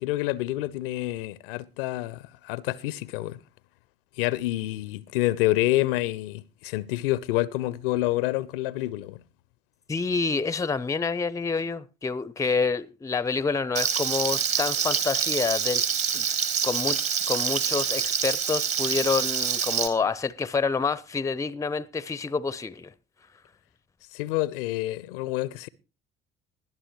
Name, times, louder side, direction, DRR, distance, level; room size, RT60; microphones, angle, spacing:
voice 1, 0.0-3.4 4.2-9.2 24.1-25.7, left 17 dB, 65° left, 0.6 m, -28 dB
voice 2, 9.9-15.9 16.1-16.3 16.6-17.0 17.3-22.9, left 4 dB, 10° left, 0.6 m, -28 dB
Frying (food), 13.8-19.9, right 7 dB, 50° right, 2.2 m, -26 dB
20.5 x 11.0 x 3.0 m
figure-of-eight pair, 55°, 30 cm